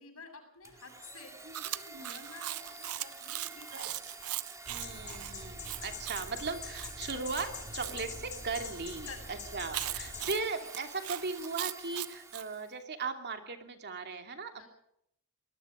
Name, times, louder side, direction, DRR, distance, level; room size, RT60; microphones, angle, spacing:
voice 1, 0.0-4.0 9.0-9.5 14.5-14.7, left 4 dB, 75° left, 4 dB, 7.9 m, -51 dB
Domestic sounds home sounds, 0.6-12.7, right 3 dB, 15° right, 2.7 m, -49 dB
Chewing mastication, 1.5-8.0 9.7-12.5, right 15 dB, 80° right, 0.7 m, -40 dB
sound 1, 4.7-10.3, left 4 dB, 35° left, 4.5 m, -44 dB
voice 2, 4.7-14.7, right 4 dB, 50° right, 5 dB, 2.8 m, -38 dB
25.0 x 20.5 x 5.1 m, 0.75 s
head